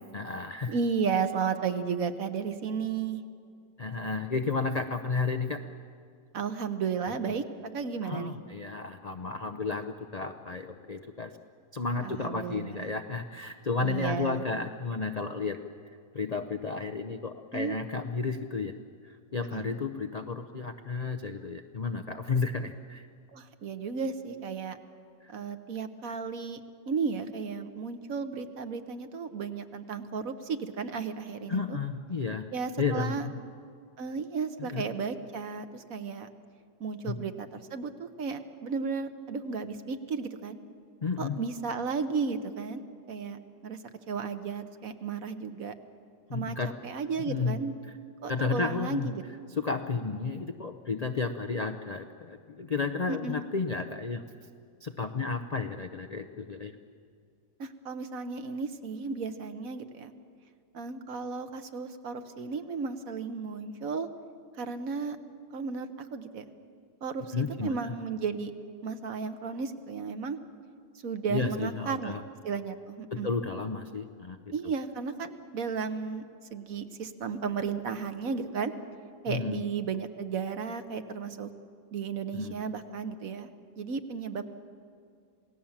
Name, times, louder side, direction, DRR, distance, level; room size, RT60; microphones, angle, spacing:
voice 1, 0.1-0.8 3.8-5.6 8.0-11.3 11.7-15.6 16.1-18.7 19.0-23.1 25.2-25.3 31.5-32.5 32.8-33.3 34.6-34.8 37.0-37.2 41.0-41.4 46.3-46.7 47.3-47.6 48.3-49.1 49.6-54.2 54.8-56.7 67.3-67.9 71.3-72.2 73.1-74.5 79.3-79.6 82.3-82.5, left 4 dB, 70° left, 7 dB, 0.3 m, -32 dB
voice 2, 0.7-3.2 6.3-7.4 7.7-8.4 12.0-12.9 13.8-14.4 17.5-17.7 19.5-19.6 23.3-24.8 25.3-26.6 26.9-31.8 32.5-33.3 34.0-36.3 36.8-40.6 41.2-43.8 44.1-45.7 46.3-46.6 46.8-47.7 48.2-49.2 53.1-53.4 57.6-60.1 60.7-64.1 64.6-65.2 65.5-66.4 67.0-68.5 68.8-70.4 71.0-72.2 72.4-73.3 74.5-76.2 76.5-78.7 79.2-81.5 81.9-83.5 83.8-84.5, right 5 dB, 55° right, 9 dB, 1.3 m, -34 dB
27.5 x 18.0 x 7.3 m, 2.3 s
omnidirectional pair, 1.8 m